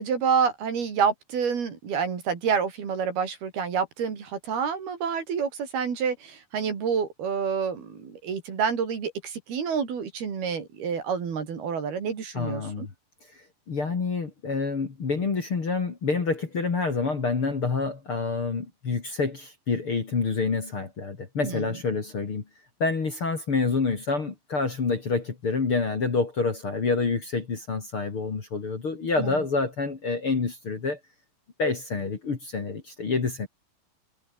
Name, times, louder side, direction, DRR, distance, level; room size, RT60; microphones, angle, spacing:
voice 1, 0.0-12.9 21.4-21.7 29.2-29.4, right 6 dB, 60° right, 5.7 m, -28 dB
voice 2, 12.3-12.9 13.7-22.4 22.8-31.0 31.6-33.5, left 4 dB, 35° left, 3.1 m, -27 dB
omnidirectional pair, 5.0 m